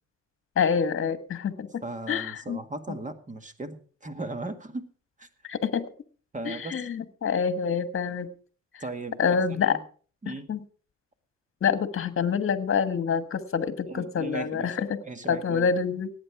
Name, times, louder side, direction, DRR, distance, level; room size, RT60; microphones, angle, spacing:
voice 1, 0.6-1.7 2.1-2.6 5.4-5.8 6.4-8.3 8.7-8.8 9.2-9.8 10.2-10.6 11.6-15.0 15.3-16.1, left 6 dB, 45° left, 11 dB, 1.5 m, -27 dB
voice 2, 1.8-3.8 4.0-4.9 5.2-5.3 6.3-6.8 8.8-9.2 9.5-9.8 10.2-10.5 13.9-15.7, right 2 dB, 25° right, 8 dB, 1.9 m, -37 dB
18.0 x 9.1 x 4.9 m, 0.43 s
cardioid pair, 90°, 30 cm